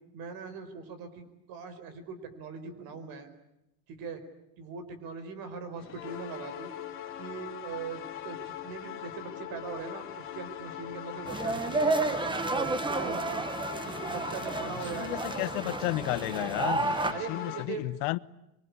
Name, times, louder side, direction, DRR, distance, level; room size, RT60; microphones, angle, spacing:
voice 1, 0.1-3.3 3.9-4.2 4.6-6.7 7.2-12.0 12.5-13.4 13.8-15.2 17.1-17.8, right 5 dB, 60° right, 5.0 m, -41 dB
sound 1, 5.8-17.7, left 11 dB, 30° left, 2.9 m, -41 dB
sound 2, 11.3-17.1, right 3 dB, 10° right, 1.2 m, -31 dB
voice 2, 14.7-18.2, left 22 dB, 90° left, 1.0 m, -33 dB
25.5 x 23.5 x 9.9 m
cardioid pair, 165°, 39 cm